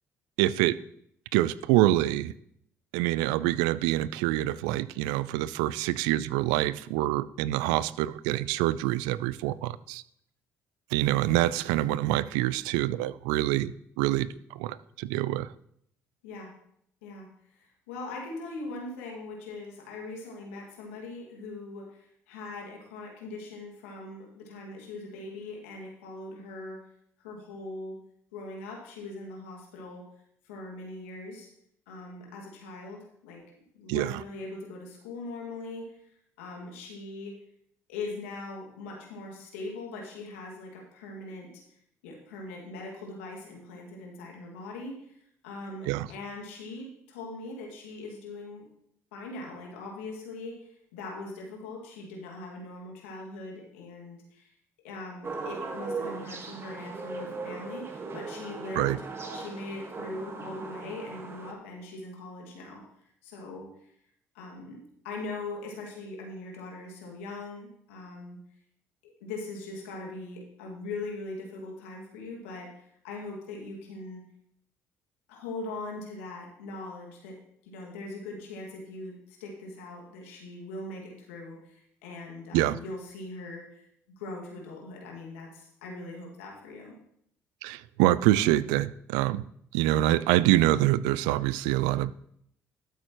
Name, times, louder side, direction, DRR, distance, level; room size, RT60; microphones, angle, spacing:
voice 1, 0.4-0.8 1.3-2.3 2.9-10.0 10.9-14.3 14.6-15.5 33.9-34.1 45.9-46.1 58.7-59.0 82.5-82.8 87.6-89.4 89.7-92.1, right 15 dB, 80° right, 18 dB, 0.3 m, -26 dB
voice 2, 17.5-26.9 27.2-28.0 28.3-30.1 30.4-31.5 31.9-33.4 33.7-36.0 36.4-37.4 37.9-41.6 42.0-45.2 45.4-48.7 49.1-54.5 54.8-59.1 59.3-62.8 63.2-63.9 64.3-64.8 65.0-68.4 69.0-74.2 75.3-83.9 84.2-86.9, left 2 dB, 90° left, -1 dB, 2.0 m, -41 dB
sound 1, 55.2-61.5, right 4 dB, 35° right, 1.5 m, -38 dB
12.5 x 8.0 x 3.0 m, 0.70 s
hypercardioid pair, 60°, 7 cm